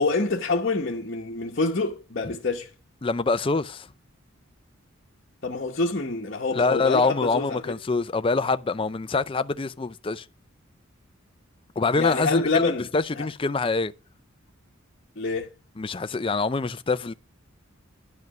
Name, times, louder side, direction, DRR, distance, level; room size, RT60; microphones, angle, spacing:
voice 1, 0.0-2.7 5.4-7.6 12.0-12.9 13.1-13.3 15.2-15.5, left 3 dB, 50° left, 1.1 m, -26 dB
voice 2, 3.0-3.9 6.5-10.3 11.8-13.9 15.8-17.1, left 3 dB, 25° left, 0.5 m, -25 dB
11.0 x 5.2 x 5.9 m
head